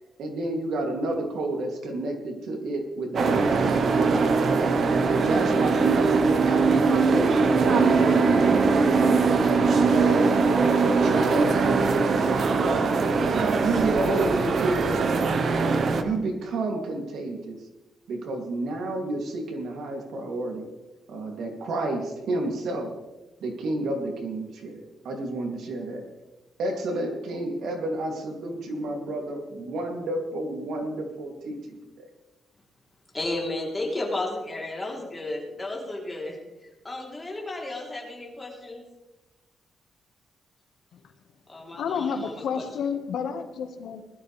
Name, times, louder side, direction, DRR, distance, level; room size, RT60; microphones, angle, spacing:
voice 1, 0.2-4.3 5.0-10.4 10.8-12.9 13.3-15.0 15.9-17.6 18.1-20.6 21.1-22.9 23.4-26.0 26.6-32.1, right 2 dB, 75° right, 2 dB, 2.7 m, -30 dB
sound 1, 3.2-16.0, right 4 dB, 50° right, 1.1 m, -21 dB
voice 2, 33.1-36.4 36.8-38.8 41.5-42.7, left 2 dB, 15° left, -2 dB, 3.5 m, -33 dB
voice 3, 41.7-44.0, left 6 dB, 75° left, 6 dB, 1.5 m, -30 dB
20.0 x 12.5 x 3.4 m, 1.1 s
cardioid pair, 155°, 0 cm